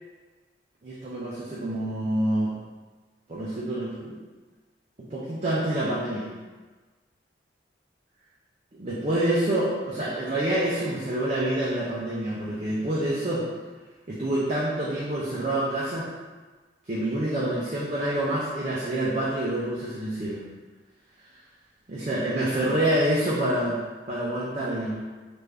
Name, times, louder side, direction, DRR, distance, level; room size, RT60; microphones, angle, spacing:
voice 1, 0.8-2.5 3.3-4.2 5.1-6.3 8.7-13.5 14.1-16.1 16.9-20.4 21.9-25.0, right 1 dB, 40° right, -7 dB, 0.5 m, -27 dB
3.4 x 2.5 x 3.3 m, 1.3 s
head